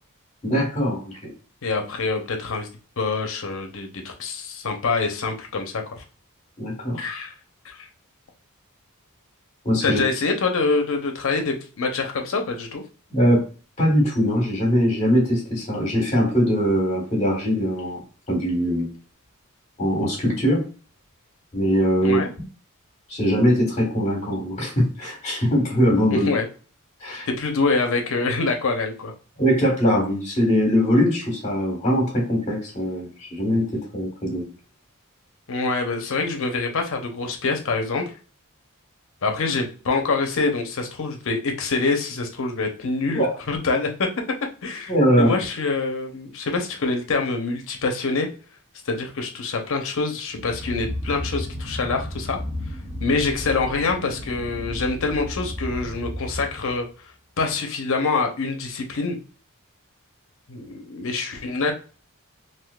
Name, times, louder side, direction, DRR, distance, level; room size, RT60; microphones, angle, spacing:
voice 1, 0.4-1.3 6.6-7.0 9.6-10.0 13.1-13.4 13.8-18.0 18.3-18.9 19.8-20.7 21.5-22.2 23.1-26.3 27.0-27.3 29.4-34.4 43.1-43.3 44.9-45.3, equal, 30° left, 0 dB, 1.4 m, -21 dB
voice 2, 1.6-2.7 3.0-6.0 6.9-7.3 7.6-7.9 9.8-12.8 22.0-22.3 26.1-26.5 27.3-29.1 35.5-38.1 39.2-44.1 44.6-48.3 48.9-52.4 53.0-56.9 57.4-59.2 60.5-61.7, left 3 dB, 65° left, 4 dB, 0.7 m, -25 dB
sound 1, 50.3-56.8, left 1 dB, 15° right, 1.6 m, -33 dB
3.6 x 2.7 x 2.3 m, 0.37 s
head